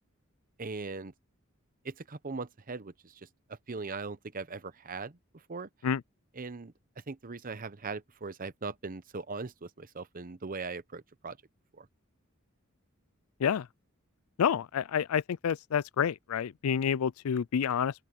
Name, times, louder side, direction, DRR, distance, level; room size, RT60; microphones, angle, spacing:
voice 1, 0.6-1.1 1.8-5.2 5.5-5.7 6.4-6.7 7.1-11.4 11.8-11.9, right 4 dB, 40° right, 0.9 m, -40 dB
voice 2, 14.4-17.9, left 7 dB, 90° left, 0.4 m, -28 dB
open air
head